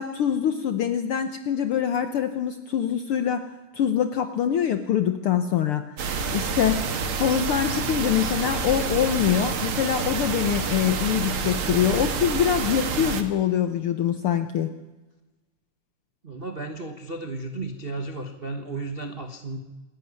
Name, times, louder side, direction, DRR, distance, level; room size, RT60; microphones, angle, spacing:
voice 1, 0.0-3.4 3.7-6.8 7.2-14.7, left 9 dB, 80° left, 9 dB, 1.2 m, -24 dB
sound 1, 6.0-13.2, right 5 dB, 50° right, 2.0 m, -28 dB
sound 2, 6.1-11.4, right 3 dB, 25° right, 2.1 m, -50 dB
voice 2, 16.2-19.6, right 3 dB, 75° right, 6 dB, 0.5 m, -34 dB
27.0 x 11.5 x 9.6 m, 1.2 s
omnidirectional pair, 3.7 m